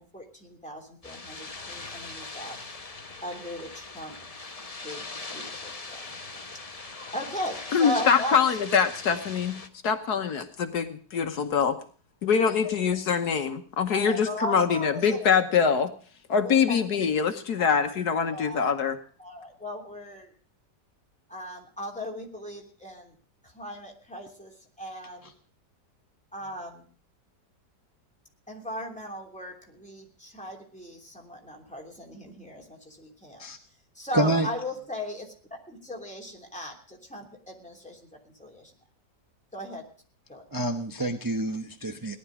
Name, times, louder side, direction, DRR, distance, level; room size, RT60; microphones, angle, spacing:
voice 1, 0.0-2.6 3.2-4.2 4.8-5.1 5.3-6.0 7.1-8.3 13.9-15.3 16.4-16.8 17.6-17.9 18.3-18.7 19.2-20.3 21.3-23.1 23.4-25.3 26.3-26.9 28.5-33.5 33.9-35.3 35.7-38.7 39.5-39.9 40.3-40.4, equal, 5° left, -1 dB, 3.1 m, -37 dB
sound 1, 1.0-9.7, left 3 dB, 25° left, 1.0 m, -41 dB
voice 2, 7.7-9.6 9.8-11.8 12.2-15.9 16.3-19.0, left 6 dB, 70° left, 7 dB, 1.6 m, -24 dB
voice 3, 34.1-34.5 40.5-42.2, right 1 dB, 15° right, 4 dB, 0.7 m, -27 dB
18.0 x 11.0 x 4.9 m, 0.43 s
omnidirectional pair, 1.8 m